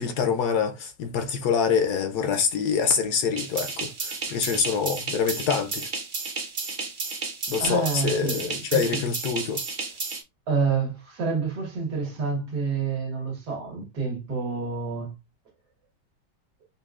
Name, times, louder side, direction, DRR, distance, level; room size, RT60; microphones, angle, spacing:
voice 1, 0.0-5.9 7.5-9.6, left 6 dB, 70° left, 1.0 m, -25 dB
sound 1, 3.4-10.2, right 4 dB, 45° right, 0.6 m, -32 dB
voice 2, 7.6-9.0 10.5-15.1, right 5 dB, 65° right, 1.8 m, -28 dB
5.4 x 2.3 x 2.4 m
omnidirectional pair, 1.9 m